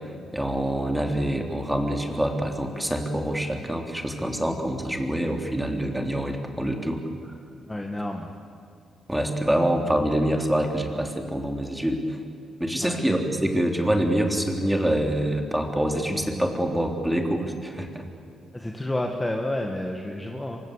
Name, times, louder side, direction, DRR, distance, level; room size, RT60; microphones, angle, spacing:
voice 1, 0.3-7.3 9.1-12.2 12.6-18.1, right 1 dB, 5° right, 3 dB, 3.4 m, -26 dB
voice 2, 7.7-8.3 12.8-13.1 18.5-20.6, left 1 dB, 10° left, 2 dB, 1.9 m, -30 dB
26.5 x 25.5 x 8.3 m, 2.6 s
cardioid pair, 130°, 0 cm